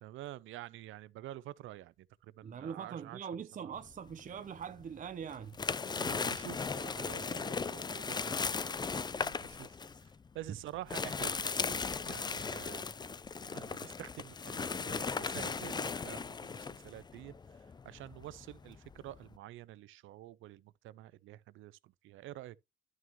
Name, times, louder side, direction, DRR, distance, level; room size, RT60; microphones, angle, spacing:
voice 1, 0.0-3.2 3.6-3.8 5.9-8.9 9.2-9.8 10.3-12.8 13.4-17.3 17.8-22.6, right 15 dB, 80° right, 0.5 m, -48 dB
voice 2, 2.4-5.5 10.5-10.6, right 7 dB, 40° right, 0.6 m, -42 dB
sound 1, 3.9-4.8 5.2-19.4, left 5 dB, 20° left, 0.4 m, -37 dB
11.0 x 6.2 x 3.0 m
cardioid pair, 90°, 20 cm